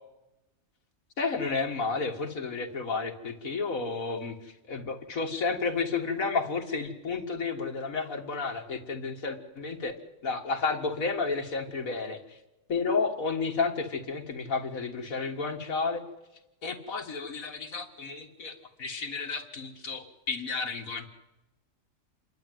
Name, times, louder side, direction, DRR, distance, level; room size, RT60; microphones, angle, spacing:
voice 1, 1.2-4.3 4.7-9.9 10.2-12.2 12.7-16.0 16.6-21.1, left 4 dB, 90° left, 3 dB, 2.3 m, -31 dB
28.0 x 12.0 x 9.3 m, 0.98 s
omnidirectional pair, 1.4 m